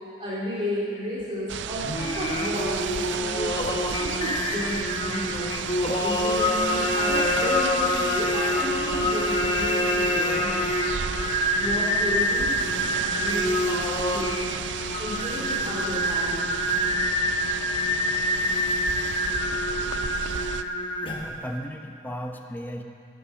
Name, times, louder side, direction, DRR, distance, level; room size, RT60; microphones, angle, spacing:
voice 1, 0.2-5.5 6.0-10.7 11.6-14.6 15.0-16.4, equal, 30° right, -8 dB, 2.6 m, -33 dB
sound 1, 1.5-20.6, right 7 dB, 80° right, 0.5 m, -33 dB
Singing, 1.8-21.4, left 1 dB, 30° left, 1.2 m, -26 dB
voice 2, 21.2-22.8, equal, 10° left, 3 dB, 0.9 m, -35 dB
17.0 x 8.5 x 6.3 m, 2.6 s
head